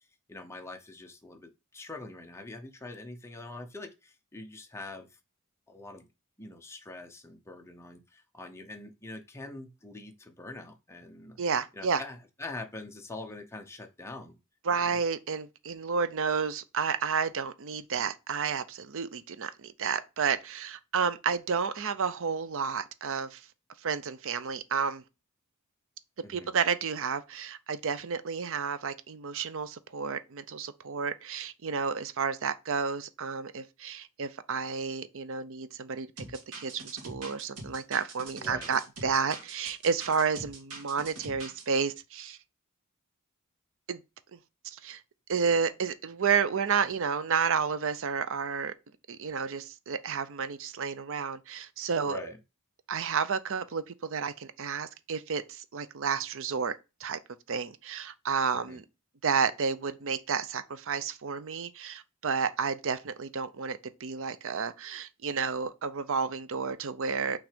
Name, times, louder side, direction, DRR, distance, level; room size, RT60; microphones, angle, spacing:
voice 1, 0.3-5.2 5.7-6.1 6.4-11.4 11.7-14.4 14.7-15.0 26.2-26.5 38.4-38.8 52.1-52.4 58.6-58.8, left 2 dB, 10° left, 0.8 m, -44 dB
voice 2, 11.4-12.0 14.6-23.4 23.8-25.0 26.3-36.1 36.6-42.4 43.9-44.0 44.3-44.4 44.6-45.0 45.3-48.7 49.1-52.2 52.9-56.7 57.0-57.2 57.5-58.8 59.2-67.4, right 6 dB, 60° right, 0.6 m, -31 dB
sound 1, 36.2-41.6, right 2 dB, 90° right, 1.9 m, -44 dB
6.0 x 3.3 x 5.1 m
head